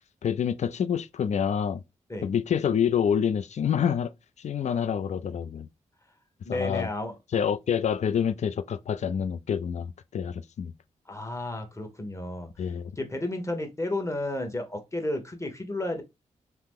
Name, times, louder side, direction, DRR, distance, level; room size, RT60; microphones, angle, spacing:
voice 1, 0.2-1.8 2.2-4.1 4.4-5.7 6.5-6.9 7.3-10.7 12.6-12.9, left 8 dB, 60° left, 0.4 m, -27 dB
voice 2, 6.4-7.2 11.1-12.5 13.0-16.0, left 1 dB, 20° left, 1.1 m, -32 dB
2.8 x 2.0 x 3.6 m
cardioid pair, 50°, 13 cm